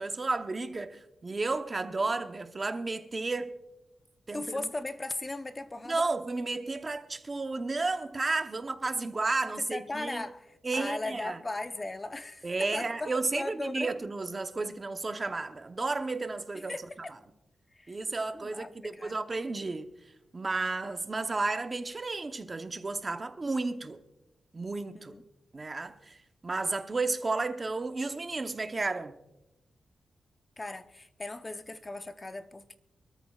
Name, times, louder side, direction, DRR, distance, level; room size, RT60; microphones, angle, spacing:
voice 1, 0.0-3.5 4.3-4.7 5.9-10.2 10.6-11.4 12.4-16.7 17.9-19.9 20.3-24.0 24.5-25.1 25.5-26.2 26.4-29.1, right 3 dB, 30° right, 0.8 m, -32 dB
voice 2, 4.3-6.0 9.5-13.9 16.5-17.1 17.7-18.0 18.3-19.2 24.9-25.2 30.6-32.8, left 2 dB, 20° left, 0.7 m, -38 dB
25.0 x 13.5 x 2.4 m
wide cardioid pair, 130°, 0 cm